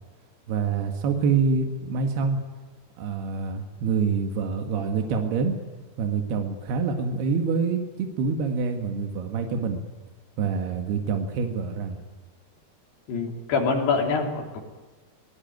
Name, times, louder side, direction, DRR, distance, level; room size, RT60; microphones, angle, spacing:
voice 1, 0.5-2.4 3.0-5.6 6.0-9.8 10.4-12.0, right 5 dB, 80° right, 5 dB, 3.8 m, -26 dB
voice 2, 13.1-14.6, left 4 dB, 90° left, 3 dB, 5.2 m, -25 dB
23.5 x 18.5 x 9.3 m, 1.3 s
omnidirectional pair, 4.6 m